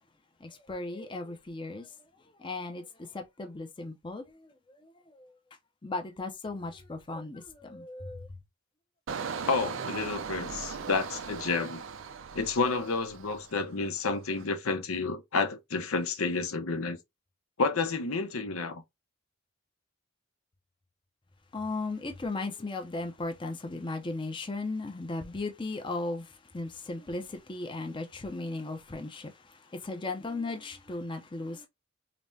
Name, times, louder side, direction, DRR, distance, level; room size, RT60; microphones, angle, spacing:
voice 1, 0.4-2.1 2.4-5.3 5.8-8.3 21.5-31.7, left 2 dB, 25° left, 0.5 m, -37 dB
Engine, 9.1-13.7 14.1-14.4, right 5 dB, 65° right, 0.4 m, -38 dB
voice 2, 9.5-11.8 12.3-17.0 17.6-18.8, left 4 dB, 85° left, 0.8 m, -30 dB
5.1 x 2.1 x 2.6 m
head